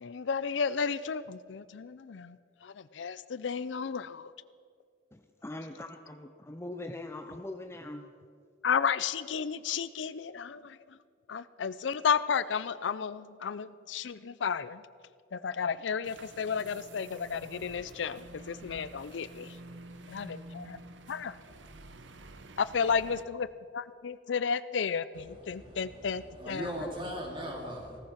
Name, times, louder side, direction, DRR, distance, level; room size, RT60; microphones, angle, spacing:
voice 1, 0.0-4.3 8.6-10.8 11.3-14.8 15.3-19.6 20.1-20.8 21.1-21.3 22.6-23.5 23.7-26.9, left 6 dB, 75° left, 0.5 m, -33 dB
voice 2, 5.1-8.1, left 2 dB, 15° left, 0.6 m, -42 dB
sound 1, 16.0-23.2, right 2 dB, 80° right, 1.0 m, -49 dB
voice 3, 25.5-25.8 26.4-28.0, equal, 30° right, 2.9 m, -38 dB
17.0 x 14.5 x 5.8 m
head